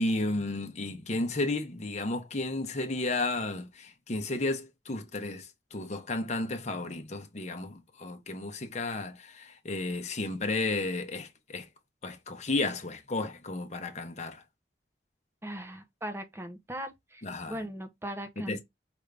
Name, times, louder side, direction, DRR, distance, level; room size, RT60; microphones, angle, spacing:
voice 1, 0.0-11.7 12.0-14.4 17.2-17.5 18.5-18.6, left 2 dB, 40° left, 0.8 m, -33 dB
voice 2, 15.4-18.6, right 1 dB, 15° right, 0.7 m, -39 dB
5.0 x 2.7 x 3.3 m
head